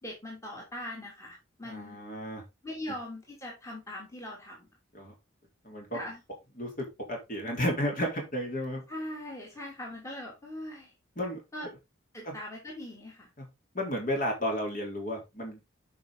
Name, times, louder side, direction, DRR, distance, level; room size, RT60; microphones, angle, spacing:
voice 1, 0.0-2.0 2.6-4.7 5.9-6.2 8.9-10.9 11.5-11.7 12.1-13.3, left 1 dB, 15° left, -2 dB, 2.9 m, -41 dB
voice 2, 1.6-2.4 4.9-5.1 5.6-6.0 6.6-8.8 11.2-11.4 12.3-12.4 13.4-13.5 13.7-15.7, equal, 40° left, 1 dB, 3.7 m, -32 dB
9.3 x 5.6 x 3.9 m, 0.23 s
head